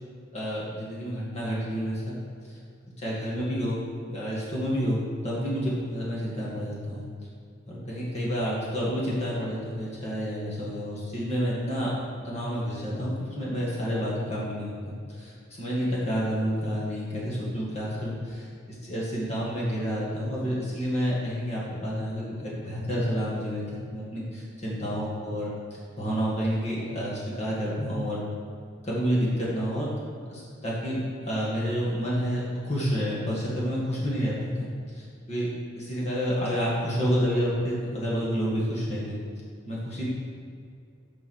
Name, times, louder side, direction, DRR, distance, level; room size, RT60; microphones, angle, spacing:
voice 1, 0.3-2.1 3.0-3.8 4.1-7.1 7.7-11.9 12.2-28.2 28.8-29.9 30.3-34.7 35.0-39.1 39.7-40.1, equal, 35° left, -6 dB, 1.8 m, -29 dB
7.0 x 5.2 x 6.4 m, 2.3 s
head